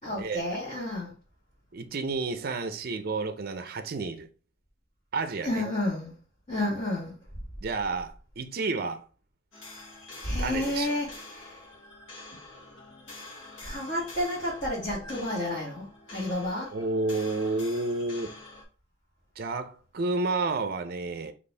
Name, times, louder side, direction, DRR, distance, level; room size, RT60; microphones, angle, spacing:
voice 1, 0.0-1.1 5.4-6.1 6.5-7.2 10.2-11.6 12.6-12.7 13.0-13.1 13.6-16.7, left 1 dB, 40° left, 1.7 m, -31 dB
voice 2, 1.7-4.3 5.1-5.6 7.6-9.0 10.4-11.0 16.7-18.3 19.4-21.3, right 3 dB, 55° right, 0.5 m, -30 dB
sound 1, 9.5-18.6, left 2 dB, 85° left, 1.4 m, -46 dB
4.3 x 2.9 x 3.3 m
head